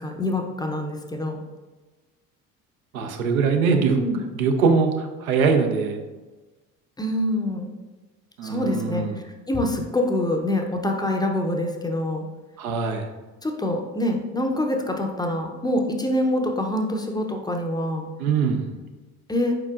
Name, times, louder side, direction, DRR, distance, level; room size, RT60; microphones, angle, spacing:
voice 1, 0.0-1.4 3.9-4.2 7.0-7.7 8.4-9.0 9.5-12.3 13.4-18.0 19.3-19.5, left 1 dB, 10° left, 2 dB, 0.5 m, -25 dB
voice 2, 2.9-4.0 4.4-6.0 8.4-9.2 12.6-13.1 18.2-18.8, right 5 dB, 85° right, 5 dB, 0.6 m, -22 dB
4.7 x 4.3 x 2.4 m, 1.2 s
hypercardioid pair, 65°, 41 cm